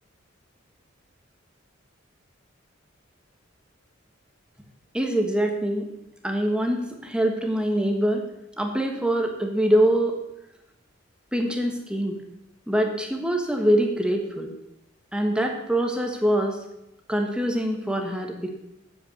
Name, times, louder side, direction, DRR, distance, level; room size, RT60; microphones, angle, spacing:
voice 1, 4.9-5.9 6.2-8.2 8.6-10.1 11.3-12.1 12.7-14.5 15.1-16.6 17.1-18.5, right 1 dB, 5° right, 3 dB, 1.4 m, -24 dB
8.8 x 8.2 x 6.7 m, 0.88 s
head